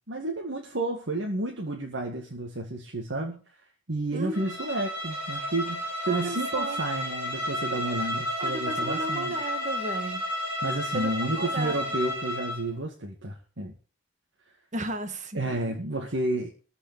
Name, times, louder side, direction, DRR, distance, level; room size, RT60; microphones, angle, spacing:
voice 1, 0.1-3.4 3.9-9.5 10.6-13.7 15.3-16.5, right 2 dB, 65° right, 2.1 m, -31 dB
voice 2, 4.1-4.4 6.1-6.8 8.4-10.3 10.9-11.1 11.4-11.8 14.7-15.8, right 2 dB, 40° right, 1.8 m, -34 dB
Bowed string instrument, 4.3-12.7, left 1 dB, 10° right, 4.7 m, -32 dB
14.0 x 5.5 x 8.9 m
head